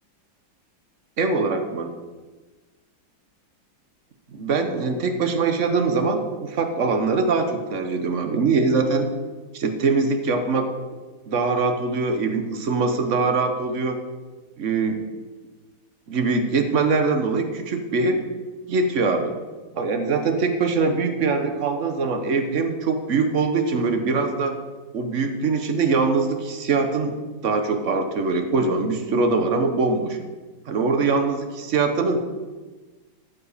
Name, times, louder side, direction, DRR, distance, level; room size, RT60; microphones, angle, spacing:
voice 1, 1.2-1.9 4.3-9.1 9.5-10.7 11.3-14.0 14.6-15.0 16.1-18.2 18.7-19.3 19.7-24.6 24.9-27.2 27.4-30.2 30.7-32.2, right 4 dB, 45° right, 6 dB, 1.2 m, -22 dB
14.0 x 5.2 x 6.7 m, 1.3 s
omnidirectional pair, 2.1 m